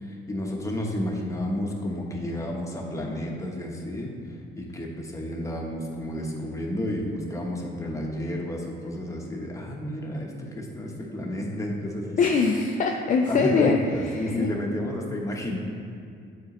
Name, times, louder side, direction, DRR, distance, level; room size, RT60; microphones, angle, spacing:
voice 1, 0.0-12.2 13.3-15.6, left 1 dB, 15° left, -1 dB, 1.0 m, -31 dB
voice 2, 12.2-14.5, left 4 dB, 40° left, 2 dB, 0.4 m, -23 dB
8.2 x 4.0 x 3.1 m, 2.4 s
cardioid pair, 90°, 20 cm